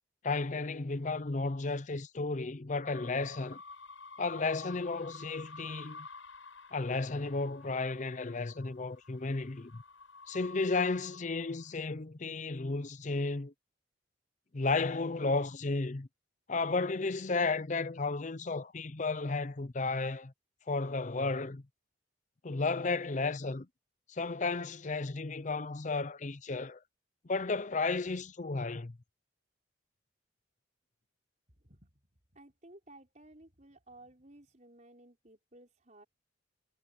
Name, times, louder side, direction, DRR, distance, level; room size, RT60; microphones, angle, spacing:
voice 1, 0.2-3.6 4.2-6.1 6.7-9.8 10.3-13.5 14.5-16.1 16.5-20.3 20.7-21.6 22.4-23.7 24.1-26.8 27.2-29.0, left 3 dB, 40° left, 0.6 m, -33 dB
sound 1, 2.9-11.7, left 4 dB, 90° left, 7.6 m, -51 dB
voice 2, 31.5-36.0, right 1 dB, 40° right, 5.4 m, -57 dB
head